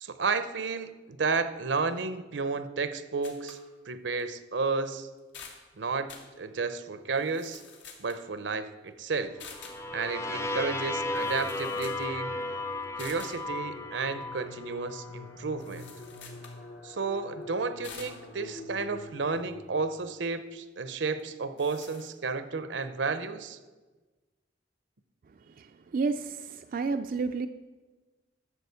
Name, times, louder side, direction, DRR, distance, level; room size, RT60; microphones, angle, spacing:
voice 1, 0.0-3.6 3.9-5.1 5.8-6.1 6.4-7.6 8.0-9.4 9.9-12.3 12.9-15.9 16.8-23.6, right 4 dB, 80° right, 11 dB, 0.7 m, -32 dB
sound 1, 3.2-3.6 4.2-4.3 4.8-4.9 5.2-5.6 6.1-6.3 7.1-8.3 9.4-9.8 10.9-11.0 11.1-12.1 12.4-12.5 13.0-13.4 15.6-16.6 17.8-18.2 21.2-21.3 21.6-22.1, left 5 dB, 85° left, 1.7 m, -48 dB
sound 2, 9.4-15.3, left 2 dB, 15° left, 0.5 m, -35 dB
sound 3, 13.3-20.2, left 2 dB, 65° left, 1.2 m, -45 dB
voice 2, 25.5-27.5, right 4 dB, 50° right, 7 dB, 0.4 m, -31 dB
11.0 x 7.0 x 6.9 m, 1.3 s
head